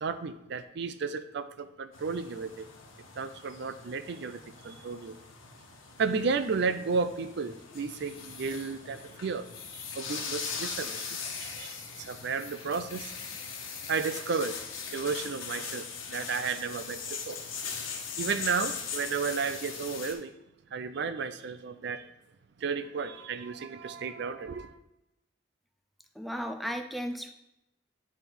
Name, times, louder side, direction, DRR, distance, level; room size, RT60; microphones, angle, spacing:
voice 1, 0.0-2.7 3.2-5.2 6.0-9.4 9.7-13.1 13.9-14.6 14.9-17.4 18.2-20.3 20.7-22.0 22.6-24.7, right 5 dB, 60° right, 0.4 m, -33 dB
sound 1, 1.9-20.1, left 6 dB, 80° left, 1.2 m, -40 dB
voice 2, 26.2-27.3, equal, ahead, 0.4 m, -35 dB
9.8 x 3.5 x 4.6 m
head